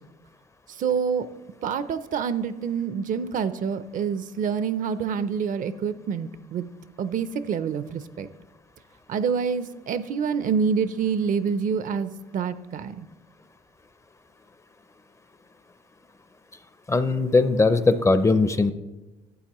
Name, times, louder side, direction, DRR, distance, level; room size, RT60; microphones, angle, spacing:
voice 1, 0.8-1.3 1.6-6.6 7.0-8.3 9.1-13.1, right 6 dB, 50° right, 14 dB, 0.5 m, -27 dB
voice 2, 16.9-18.7, left 3 dB, 15° left, 12 dB, 0.5 m, -20 dB
12.0 x 8.1 x 3.0 m, 1.1 s
cardioid pair, 110°, 17 cm